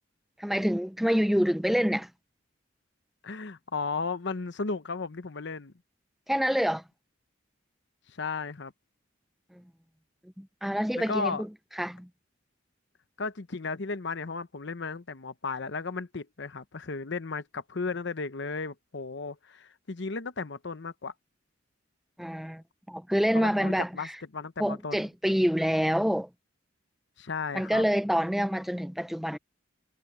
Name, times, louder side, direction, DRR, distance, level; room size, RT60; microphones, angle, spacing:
voice 1, 0.4-2.1 6.3-6.8 9.5-9.6 10.4-11.5 11.8-12.1 22.2-24.2 24.6-26.3 27.5-29.4, equal, ahead, 0.4 m, -27 dB
voice 2, 3.2-5.7 8.1-8.7 11.0-11.4 13.2-21.1 23.3-25.1 27.2-27.8, left 4 dB, 65° left, 0.9 m, -35 dB
head